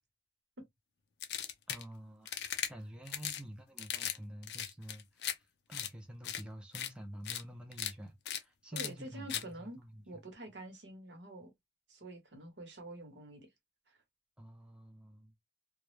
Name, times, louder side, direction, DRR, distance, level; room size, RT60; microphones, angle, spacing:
sound 1, 1.2-1.8 2.3-2.7 3.1-3.4 3.8-4.2 4.4-5.3 5.7-5.9 6.2-6.4 6.7-6.9 7.2-7.4 7.7-7.9 8.3-8.4 8.8-8.9 9.3-9.4, left 10 dB, 60° left, 0.4 m, -37 dB
voice 1, 1.7-10.0 14.4-15.3, right 1 dB, 5° right, 0.4 m, -49 dB
voice 2, 8.7-9.8 10.1-11.5 11.9-13.5 13.9-14.0, right 1 dB, 75° right, 1.0 m, -47 dB
2.2 x 2.0 x 3.0 m
head